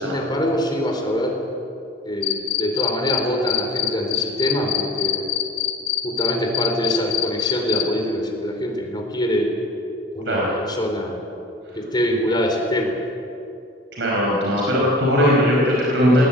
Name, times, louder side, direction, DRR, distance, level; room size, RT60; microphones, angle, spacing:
voice 1, 0.0-1.4 2.1-5.3 6.0-9.5 10.1-11.2 11.8-13.0, equal, 25° left, 2 dB, 3.8 m, -24 dB
Cricket, 2.2-3.2 3.5-7.8, left 15 dB, 75° left, 2.7 m, -23 dB
voice 2, 13.9-16.2, equal, 75° right, -4 dB, 5.3 m, -19 dB
20.5 x 19.0 x 9.0 m, 2.6 s
head